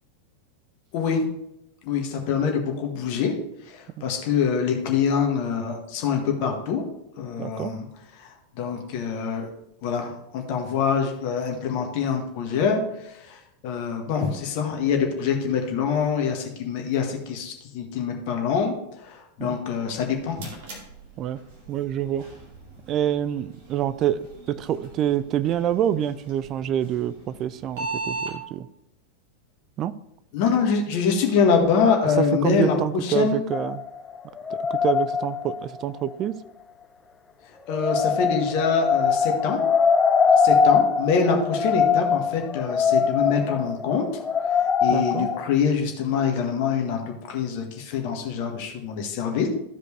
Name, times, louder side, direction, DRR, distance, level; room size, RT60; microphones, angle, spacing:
voice 1, 0.9-1.3 1.8-3.3 3.7-6.9 7.2-7.8 8.2-9.5 9.8-18.8 19.0-20.5 30.3-33.4 37.7-39.6 40.3-44.0 44.5-49.5, left 6 dB, 45° left, 3 dB, 1.6 m, -25 dB
voice 2, 7.4-7.7 19.4-19.6 21.2-21.4 21.7-22.3 22.9-28.7 29.8-29.9 32.0-33.8 34.7-36.3 44.9-45.3, right 11 dB, 35° right, 15 dB, 0.4 m, -26 dB
sound 1, 19.9-28.3, right 3 dB, 50° right, 2.4 m, -39 dB
sound 2, 33.5-35.8 37.7-45.4, left 6 dB, 20° left, 0.6 m, -22 dB
13.5 x 5.1 x 3.2 m, 0.82 s
figure-of-eight pair, 90°, 0 cm